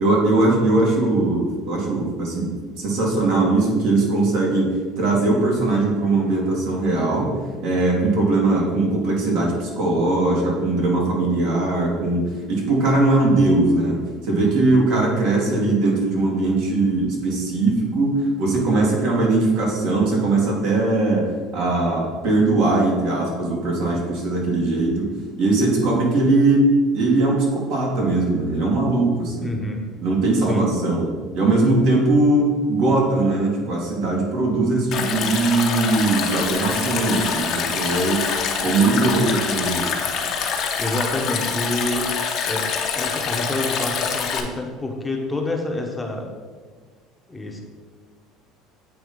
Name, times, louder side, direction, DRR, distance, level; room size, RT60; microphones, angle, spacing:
voice 1, 0.0-2.5 2.8-7.3 7.6-14.0 14.2-29.5 30.0-31.1 31.3-38.3 38.6-39.9, right 2 dB, 70° right, -2 dB, 1.8 m, -20 dB
voice 2, 29.4-29.8 30.4-30.7 40.8-42.1 42.4-42.7 42.9-46.3 47.3-47.6, left 1 dB, 10° left, 1 dB, 0.8 m, -27 dB
Stream, 34.9-44.4, left 6 dB, 55° left, 0.8 m, -25 dB
7.9 x 2.7 x 5.2 m, 1.5 s
supercardioid pair, 105°, 0 cm